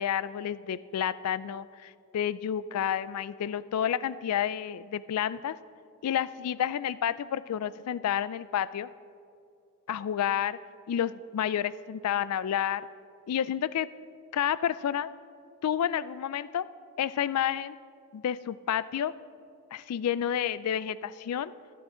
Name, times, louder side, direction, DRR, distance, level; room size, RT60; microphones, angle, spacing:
voice 1, 0.0-5.6 6.0-8.9 9.9-10.6 10.9-12.8 13.3-13.9 14.3-15.1 15.6-16.7 17.0-17.8 18.1-19.1 19.7-21.5, left 9 dB, 80° left, 17 dB, 0.3 m, -30 dB
22.5 x 8.6 x 3.8 m, 2.5 s
head